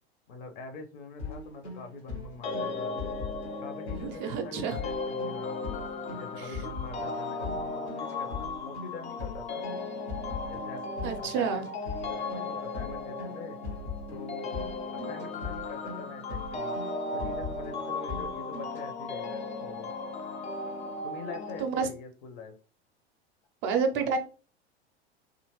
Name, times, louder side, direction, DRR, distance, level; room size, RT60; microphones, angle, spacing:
voice 1, 0.3-3.0 3.6-5.6 6.1-9.7 10.5-11.6 11.9-13.6 14.1-14.5 14.9-16.8 17.1-19.9 21.0-22.5 23.9-24.2, left 4 dB, 50° left, 0.7 m, -44 dB
sound 1, 1.2-18.9, left 3 dB, 80° left, 1.0 m, -41 dB
sound 2, 2.4-21.6, left 3 dB, 20° left, 0.4 m, -36 dB
voice 2, 4.0-4.8 6.4-6.6 11.0-11.7 21.6-21.9 23.6-24.2, right 5 dB, 35° right, 0.5 m, -29 dB
2.8 x 2.5 x 2.9 m
figure-of-eight pair, 85°, 33 cm